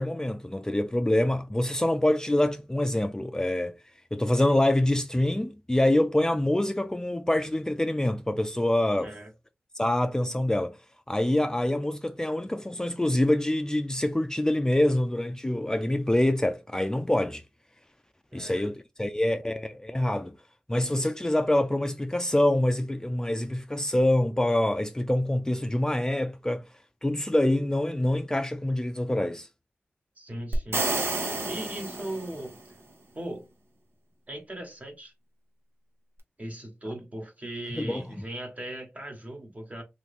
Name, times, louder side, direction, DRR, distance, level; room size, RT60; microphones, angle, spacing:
voice 1, 0.0-3.7 4.1-9.1 9.8-10.8 11.1-17.4 18.3-20.3 20.7-26.6 27.0-29.5 37.7-38.0, left 1 dB, 15° left, 0.4 m, -25 dB
voice 2, 18.3-18.7 30.2-32.5 33.1-33.5 34.3-35.1 36.4-39.8, right 1 dB, 35° right, 1.3 m, -38 dB
sound 1, 30.5-32.6, right 2 dB, 80° right, 0.9 m, -30 dB
2.8 x 2.7 x 3.6 m
cardioid pair, 45°, 4 cm